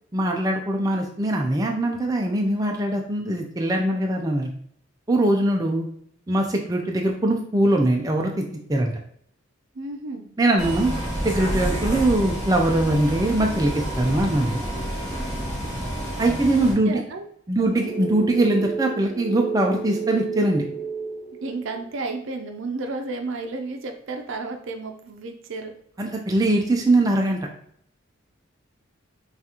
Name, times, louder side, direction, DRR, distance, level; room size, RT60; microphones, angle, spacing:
voice 1, 0.1-4.5 5.1-5.9 6.3-8.4 8.7-8.9 10.4-10.9 11.2-14.6 16.2-16.9 17.5-20.6 26.0-27.4, right 1 dB, 15° right, 1 dB, 0.4 m, -22 dB
voice 2, 9.7-10.3 16.6-17.2 17.6-17.8 21.4-25.7, right 3 dB, 65° right, 5 dB, 0.5 m, -32 dB
Bus, 10.6-16.7, equal, 15° left, 1.6 m, -29 dB
sound 1, 17.7-21.9, right 5 dB, 35° right, 0.9 m, -30 dB
5.7 x 2.4 x 2.9 m, 0.66 s
head